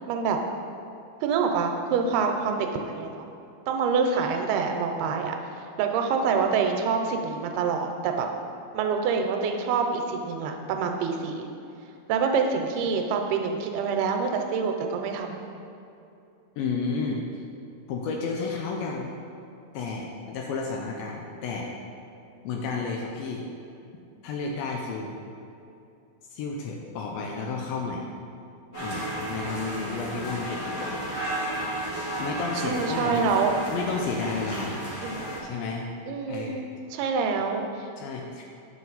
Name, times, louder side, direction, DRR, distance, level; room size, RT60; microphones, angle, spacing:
voice 1, 0.1-0.4 1.2-3.3 3.7-5.4 5.8-8.3 8.7-11.5 12.1-15.4 32.6-33.5 35.0-35.2 36.1-36.6 36.9-37.9, right 5 dB, 85° right, 4 dB, 2.5 m, -26 dB
voice 2, 16.6-17.4 17.9-19.1 19.7-21.7 22.4-23.5 24.2-25.2 26.3-28.1 28.8-31.0 32.2-33.2 33.7-34.8 35.4-35.9 36.3-36.6 38.0-38.5, left 4 dB, 80° left, 0 dB, 2.2 m, -32 dB
sound 1, 28.7-35.4, right 1 dB, 50° left, 1.5 m, -33 dB
9.3 x 5.8 x 4.0 m, 2.7 s
omnidirectional pair, 4.6 m